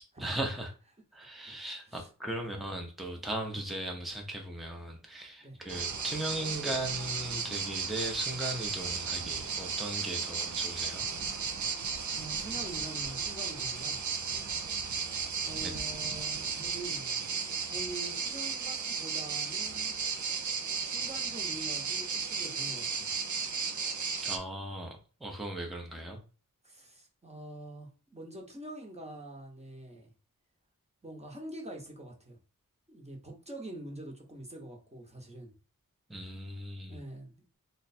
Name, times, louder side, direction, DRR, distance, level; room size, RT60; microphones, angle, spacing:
voice 1, 0.2-0.7 1.1-11.1 15.6-15.7 24.2-26.2 36.1-37.0, right 1 dB, ahead, 0.7 m, -38 dB
voice 2, 1.2-2.1 3.5-3.6 5.4-5.6 11.8-14.0 15.4-20.3 20.8-23.1 26.6-30.1 31.0-32.4 32.9-35.5 36.9-37.6, right 1 dB, 20° right, 1.0 m, -45 dB
sound 1, 5.7-24.4, right 5 dB, 60° right, 0.6 m, -34 dB
3.1 x 2.2 x 4.2 m
wide cardioid pair, 75°, 34 cm